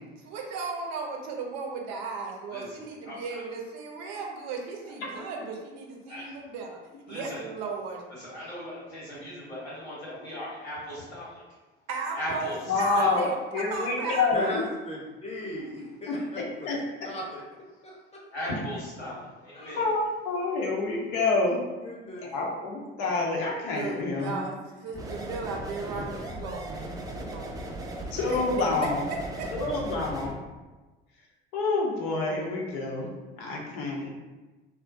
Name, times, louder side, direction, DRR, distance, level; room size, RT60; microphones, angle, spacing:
voice 1, 0.2-6.8 7.1-8.0 11.9-12.5 12.8-14.5 23.7-24.5 24.8-26.9 27.2-27.8 28.3-28.4 29.4-29.5, right 4 dB, 55° right, 1 dB, 0.6 m, -36 dB
voice 2, 2.5-3.4 4.8-4.9 6.1-6.4 7.1-7.4 8.1-11.4 12.1-13.1 18.3-19.8, left 1 dB, 85° left, -8 dB, 1.2 m, -37 dB
voice 3, 12.7-14.6 16.1-17.1 19.7-21.6 22.2-24.4 25.9-26.0 28.1-29.1 29.5-30.4 31.5-33.1 33.4-34.1, left 3 dB, 65° left, -1 dB, 0.7 m, -28 dB
voice 4, 14.3-16.7 17.0-17.4 17.8-18.2 19.5-19.8 21.2-21.3 21.8-22.3, left 1 dB, 20° left, -3 dB, 0.7 m, -38 dB
sound 1, 24.9-30.3, right 1 dB, 10° right, 0.4 m, -37 dB
2.4 x 2.1 x 2.5 m, 1.2 s
hypercardioid pair, 65°, 31 cm